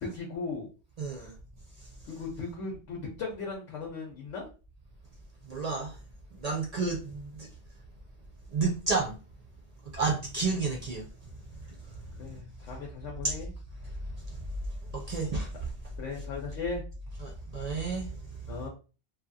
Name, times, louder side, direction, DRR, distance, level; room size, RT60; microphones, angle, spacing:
voice 1, 0.0-0.7 1.2-1.3 2.1-4.5 12.2-13.5 16.0-16.8 18.5-18.7, left 4 dB, 90° left, 1.0 m, -37 dB
voice 2, 1.0-1.3 5.5-6.0 6.3-7.5 8.5-9.2 9.9-11.0 13.2-13.3 14.3-14.4 14.9-15.7 17.2-18.2, right 4 dB, 60° right, 0.4 m, -31 dB
2.7 x 2.3 x 2.5 m
omnidirectional pair, 1.2 m